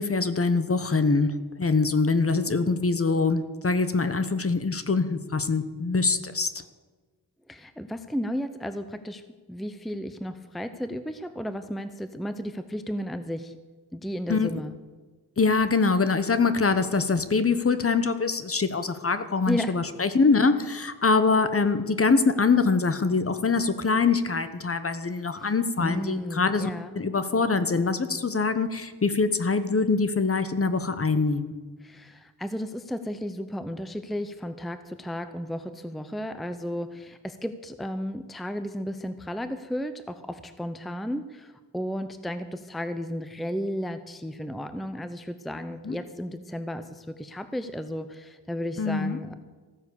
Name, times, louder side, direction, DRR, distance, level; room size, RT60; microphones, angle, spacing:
voice 1, 0.0-6.5 14.3-14.5 15.4-26.7 26.9-31.6 45.8-46.0 48.8-49.2, left 4 dB, 35° left, 11 dB, 1.0 m, -24 dB
voice 2, 7.5-9.2 9.5-13.6 13.9-14.7 19.5-19.8 25.4-25.5 25.8-26.9 31.8-49.3, equal, ahead, 11 dB, 0.7 m, -33 dB
15.5 x 9.4 x 6.9 m, 1.4 s
wide cardioid pair, 95°, 39 cm